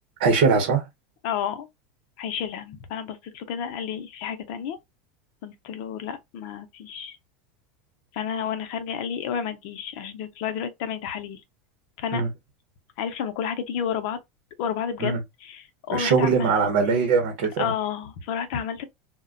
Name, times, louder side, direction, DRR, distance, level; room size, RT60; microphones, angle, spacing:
voice 1, 0.2-0.8 12.1-12.3 15.0-15.2 15.9-17.7, right 5 dB, 80° right, 0.9 m, -21 dB
voice 2, 1.2-1.7 2.2-4.8 5.4-7.2 8.1-11.4 12.0-12.2 13.0-14.2 14.6-15.1 15.4-16.5 17.6-18.8, left 8 dB, 65° left, 0.6 m, -31 dB
2.2 x 2.2 x 3.7 m
supercardioid pair, 125°, 6 cm